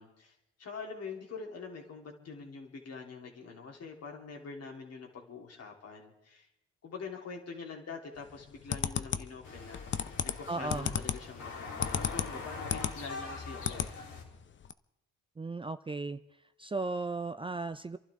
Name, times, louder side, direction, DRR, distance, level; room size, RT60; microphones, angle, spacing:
voice 1, 0.0-6.5 6.8-13.9, left 5 dB, 55° left, 0 dB, 3.4 m, -45 dB
sound 1, 8.3-13.0 13.3-13.9 14.2-14.3 14.6-14.7, left 7 dB, 40° left, 0.7 m, -33 dB
sound 2, 9.4-14.2, left 4 dB, 75° left, 3.7 m, -43 dB
voice 2, 10.5-11.0 15.4-16.2 16.6-18.0, right 3 dB, 15° right, 10 dB, 0.5 m, -35 dB
29.5 x 11.5 x 3.7 m, 0.87 s
cardioid pair, 90°, 30 cm